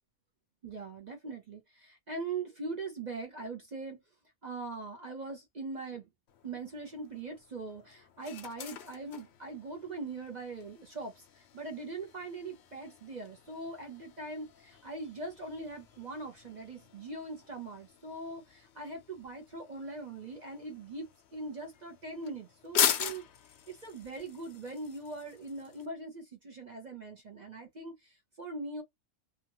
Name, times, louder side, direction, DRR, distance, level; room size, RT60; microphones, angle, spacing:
voice 1, 0.6-4.0 4.4-6.1 6.4-28.8, right 3 dB, 45° right, 0.6 m, -41 dB
sound 1, 6.3-25.9, left 9 dB, 65° left, 0.7 m, -41 dB
2.8 x 2.3 x 2.9 m
omnidirectional pair, 1.5 m